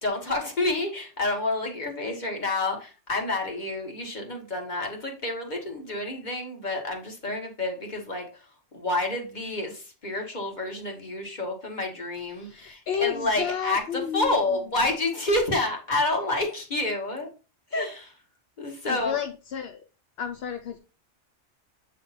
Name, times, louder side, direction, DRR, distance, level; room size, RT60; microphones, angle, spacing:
voice 1, 0.0-8.5 8.7-17.3 17.7-18.1 18.6-19.2, left 2 dB, 40° left, 2 dB, 1.6 m, -29 dB
voice 2, 12.3-14.4 18.9-19.9 20.2-20.8, left 8 dB, 65° left, 7 dB, 0.8 m, -31 dB
8.1 x 3.4 x 4.1 m, 0.34 s
omnidirectional pair, 1.2 m